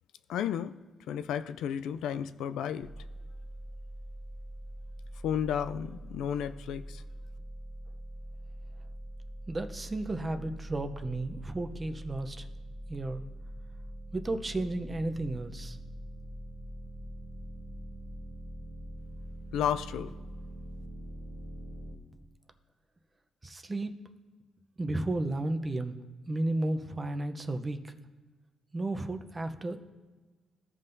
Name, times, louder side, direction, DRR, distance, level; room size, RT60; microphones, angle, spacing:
voice 1, 0.3-0.7 1.1-2.9 5.2-7.0 19.5-20.1, left 9 dB, 85° left, 11 dB, 0.3 m, -32 dB
sound 1, 2.8-22.0, right 1 dB, 50° right, 1.5 m, -43 dB
voice 2, 9.5-12.5 12.9-13.2 14.1-15.8 23.4-23.9 24.8-26.0 26.3-27.9 28.7-29.8, right 2 dB, 25° right, 7 dB, 0.7 m, -33 dB
16.0 x 5.6 x 2.7 m, 1.3 s
cardioid pair, 90°, 0 cm